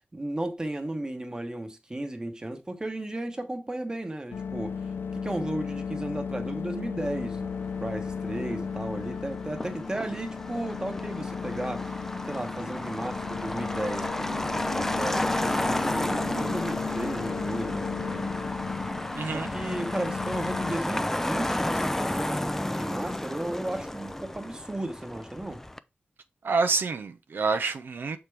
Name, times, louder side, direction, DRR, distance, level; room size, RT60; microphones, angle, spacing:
voice 1, 0.1-4.7 5.1-7.5 7.8-12.0 12.2-18.3 19.2-25.6, right 1 dB, 20° right, 1.2 m, -34 dB
sound 1, 4.3-20.8, left 6 dB, 90° left, 0.5 m, -35 dB
Motor vehicle (road), 7.0-25.8, left 1 dB, 10° left, 0.4 m, -32 dB
voice 2, 19.1-19.5 26.4-28.2, right 4 dB, 75° right, 0.5 m, -27 dB
6.7 x 4.4 x 3.5 m
wide cardioid pair, 135°, 4 cm